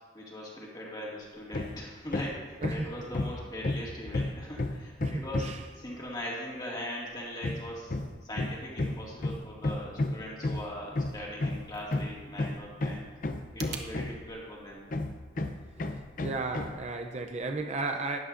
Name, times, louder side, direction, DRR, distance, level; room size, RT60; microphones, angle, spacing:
voice 1, 0.1-8.0 8.2-13.1 13.5-14.9, equal, 20° left, -4 dB, 2.1 m, -40 dB
Hammer, 1.5-1.8 2.1-5.7 7.4-14.4 14.9-16.8, left 2 dB, 45° left, 0.5 m, -32 dB
voice 2, 5.0-5.6 16.2-18.2, right 3 dB, 35° right, 4 dB, 0.5 m, -34 dB
sound 1, 11.3-13.9, right 7 dB, 65° right, 0.9 m, -47 dB
12.0 x 11.0 x 2.6 m, 1.5 s
head